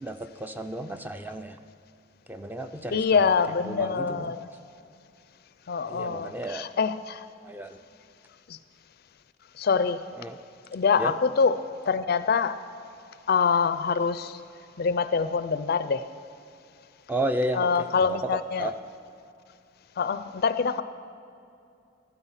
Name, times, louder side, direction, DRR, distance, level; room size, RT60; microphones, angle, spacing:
voice 1, 0.0-1.6 2.3-3.0 3.7-4.3 5.8-6.7 7.4-7.8 10.2-10.4 11.0-11.1 17.1-17.7 18.0-18.7, right 1 dB, 10° right, 8 dB, 0.4 m, -32 dB
voice 2, 2.9-4.5 5.7-7.2 8.5-8.6 9.6-10.0 10.7-12.6 13.3-14.4 14.8-16.1 17.5-18.7 20.0-20.8, left 5 dB, 55° left, 12 dB, 0.4 m, -25 dB
13.0 x 9.7 x 7.3 m, 2.6 s
head